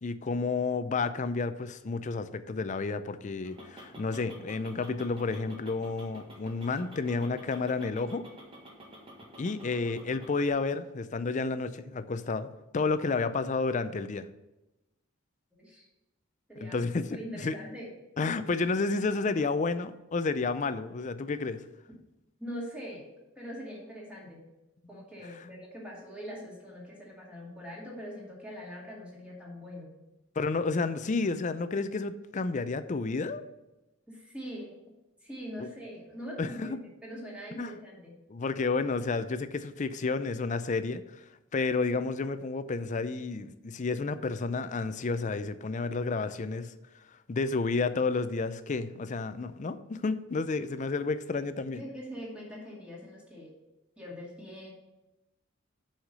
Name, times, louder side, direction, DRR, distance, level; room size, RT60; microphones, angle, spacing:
voice 1, 0.0-8.2 9.4-12.5 12.7-14.3 16.6-17.6 18.2-21.6 24.9-25.0 25.4-25.5 30.4-33.4 35.6-35.7 36.4-36.8 37.6-37.8 38.3-41.2 41.5-46.7 47.3-51.8, left 4 dB, 35° left, 12 dB, 0.4 m, -31 dB
sound 1, 3.4-10.5, equal, 25° right, 1.4 m, -50 dB
voice 2, 16.5-16.8 17.1-17.9 22.4-23.1 23.4-24.4 24.9-30.0 34.1-34.7 35.2-38.1 51.7-53.5 54.0-54.7, equal, 5° right, -4 dB, 2.3 m, -42 dB
5.8 x 5.7 x 6.8 m, 0.98 s
head